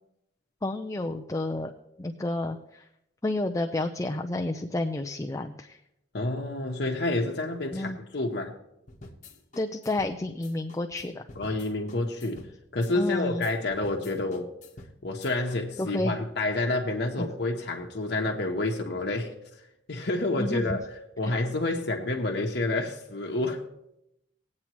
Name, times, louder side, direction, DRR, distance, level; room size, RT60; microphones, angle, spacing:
voice 1, 0.6-1.7 2.0-2.8 3.2-5.8 7.7-8.0 9.6-11.3 12.9-13.5 15.8-16.2 17.2-17.3 20.3-20.8, left 2 dB, 15° left, 3 dB, 0.5 m, -30 dB
voice 2, 6.1-8.5 11.4-12.5 12.7-14.5 15.0-19.3 19.9-20.8 21.2-23.6, left 2 dB, 60° left, 0 dB, 1.0 m, -29 dB
sound 1, 8.9-15.6, left 2 dB, 40° left, 1.1 m, -49 dB
20.5 x 8.6 x 3.0 m, 0.84 s
head